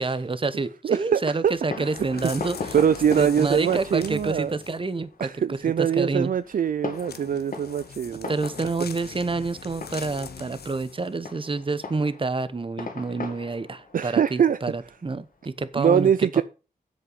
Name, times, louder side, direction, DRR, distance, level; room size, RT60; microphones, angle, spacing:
voice 1, 0.0-2.7 3.2-6.3 8.3-16.4, right 3 dB, 35° right, 0.9 m, -28 dB
voice 2, 0.8-2.3 2.7-4.5 5.2-8.3 13.9-14.6 15.8-16.4, right 8 dB, 60° right, 0.4 m, -23 dB
Fireworks, 1.5-15.6, left 4 dB, 65° left, 2.1 m, -40 dB
sound 1, 2.0-4.9 6.9-11.1 11.7-11.8, left 6 dB, 85° left, 1.0 m, -42 dB
8.2 x 7.6 x 5.5 m
wide cardioid pair, 80°, 16 cm